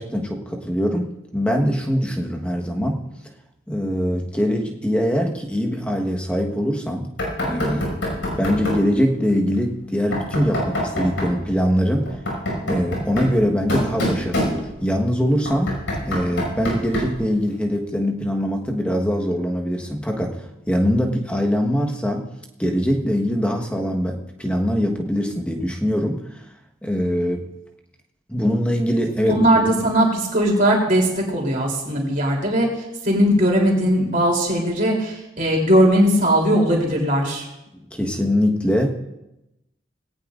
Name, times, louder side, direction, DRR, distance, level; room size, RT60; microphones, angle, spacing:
voice 1, 0.0-3.0 3.7-7.1 7.4-8.0 8.4-12.2 12.6-22.3 22.6-26.2 26.8-27.5 28.3-29.7 37.7-38.9, equal, 5° left, 2 dB, 1.3 m, -22 dB
Knock, 7.2-8.9 10.1-11.4 12.0-14.9 15.4-17.2, equal, 70° left, 6.0 m, -26 dB
voice 2, 29.3-32.7 33.0-37.4, equal, 40° right, -1 dB, 3.4 m, -19 dB
19.0 x 17.5 x 2.5 m, 0.92 s
head